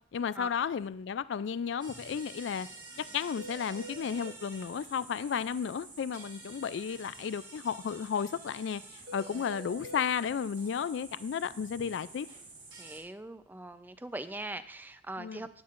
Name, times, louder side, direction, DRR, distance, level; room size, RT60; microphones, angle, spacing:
voice 1, 0.1-2.7 3.0-12.3 15.2-15.4, left 7 dB, 75° left, 16 dB, 0.3 m, -33 dB
sound 1, 1.8-13.0, right 3 dB, 25° right, 3.2 m, -49 dB
sound 2, 2.1-2.2 2.5-2.6 2.9-3.0 3.4-4.3 9.1-10.0, right 2 dB, 55° right, 0.6 m, -46 dB
voice 2, 12.8-15.5, right 2 dB, 10° right, 11 dB, 0.5 m, -41 dB
16.0 x 10.5 x 2.5 m, 0.62 s
head